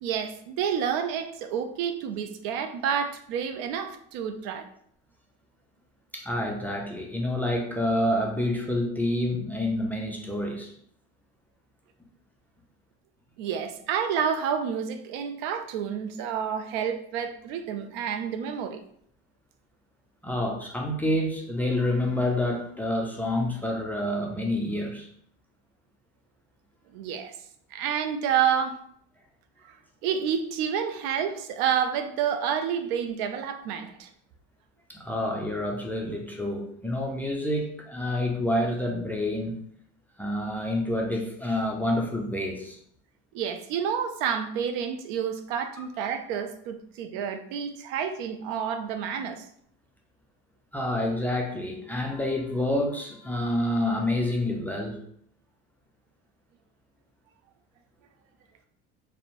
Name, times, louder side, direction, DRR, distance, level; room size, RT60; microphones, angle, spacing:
voice 1, 0.0-4.7 13.4-18.8 26.9-27.3 27.7-28.8 30.0-34.1 43.3-49.4, right 8 dB, 70° right, 7 dB, 0.4 m, -29 dB
voice 2, 6.1-10.7 20.2-25.1 34.9-39.5 40.2-42.8 50.7-55.0, left 1 dB, 5° left, 0 dB, 0.3 m, -28 dB
2.5 x 2.0 x 2.9 m, 0.66 s
supercardioid pair, 95°, 32 cm